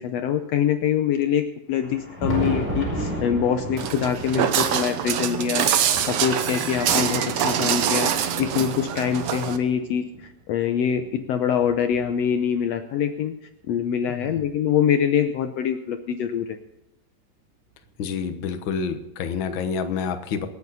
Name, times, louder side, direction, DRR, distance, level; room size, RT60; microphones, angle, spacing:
voice 1, 0.0-5.7 6.1-8.1 8.4-13.3 13.7-16.6, left 8 dB, 85° left, 8 dB, 1.4 m, -24 dB
Thunder, 1.7-10.3 10.9-12.6 13.8-13.9 14.4-14.5 16.4-16.5 17.8-17.9 19.5-19.6, right 1 dB, 25° left, 5.8 m, -34 dB
Walk footsteps, 3.8-9.6, right 9 dB, 70° right, 1.7 m, -24 dB
voice 2, 18.0-20.5, left 6 dB, 65° left, 8 dB, 1.2 m, -28 dB
27.0 x 9.3 x 4.1 m, 0.91 s
omnidirectional pair, 4.0 m